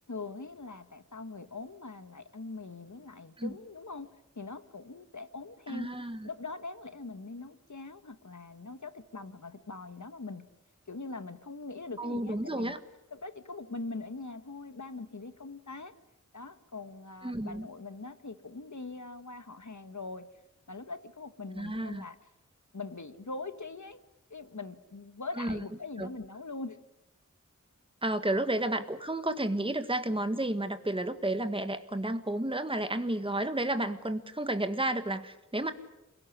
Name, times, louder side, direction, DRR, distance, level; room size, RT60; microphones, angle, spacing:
voice 1, 0.1-5.9 6.2-10.5 10.9-12.8 13.1-15.9 16.3-20.3 20.7-22.2 22.7-24.0 24.3-26.8, left 3 dB, 65° left, 11 dB, 1.6 m, -42 dB
voice 2, 5.7-6.3 12.0-12.8 17.2-17.7 21.5-22.0 25.4-25.6 26.0-26.1 28.0-35.7, right 1 dB, 15° right, 8 dB, 1.6 m, -31 dB
28.5 x 17.5 x 10.0 m, 0.96 s
wide cardioid pair, 50°, 31 cm